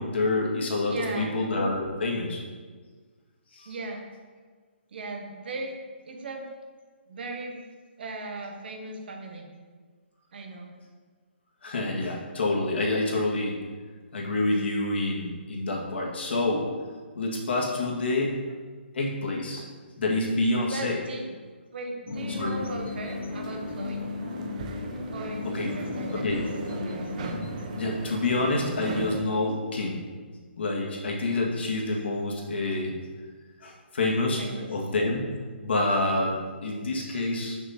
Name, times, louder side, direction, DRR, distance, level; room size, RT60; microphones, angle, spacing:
voice 1, 0.0-2.4 3.5-3.7 11.6-13.5 14.1-16.7 17.2-18.4 18.9-19.6 20.0-21.0 22.3-22.5 25.4-25.7 26.1-26.4 27.3-27.5 27.8-30.0 30.6-33.0 33.6-34.4 34.7-35.2 35.6-37.6, left 2 dB, 65° left, -1 dB, 2.0 m, -27 dB
voice 2, 0.9-1.4 3.6-4.0 4.9-5.7 6.1-6.5 7.1-7.6 8.0-9.5 10.3-10.7 20.7-21.4 21.7-24.0 25.1-26.4 26.8-27.1 34.4-34.8, right 2 dB, 55° right, 3 dB, 1.4 m, -37 dB
sound 1, 22.1-28.0, left 4 dB, 85° left, 0.7 m, -35 dB
sound 2, 22.1-29.2, right 4 dB, 35° right, 0.8 m, -38 dB
6.9 x 6.3 x 4.4 m, 1.5 s
hypercardioid pair, 160°, 6 cm